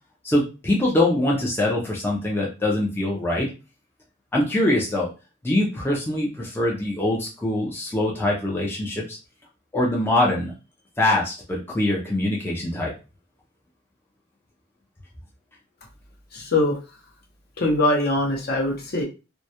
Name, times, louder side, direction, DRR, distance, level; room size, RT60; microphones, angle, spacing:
voice 1, 0.2-3.5 4.3-5.1 5.4-9.0 9.7-10.5 11.0-12.9, left 1 dB, 10° left, -3 dB, 0.4 m, -23 dB
voice 2, 16.3-16.8 17.6-19.0, left 2 dB, 50° left, 0 dB, 0.7 m, -22 dB
2.2 x 2.0 x 2.7 m, 0.30 s
head